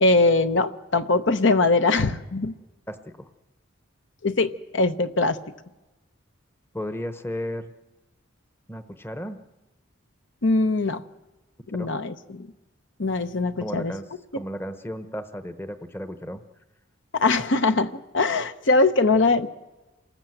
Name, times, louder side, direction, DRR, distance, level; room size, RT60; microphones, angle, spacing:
voice 1, 0.0-2.5 4.2-5.4 10.4-11.0 11.7-12.5 13.0-13.9 17.1-19.5, left 3 dB, 60° left, 10 dB, 0.9 m, -22 dB
voice 2, 2.9-3.3 6.7-7.7 8.7-9.4 11.8-11.9 13.6-14.1 14.3-16.4, equal, 10° left, 10 dB, 0.9 m, -34 dB
27.5 x 19.5 x 7.9 m, 1.1 s
head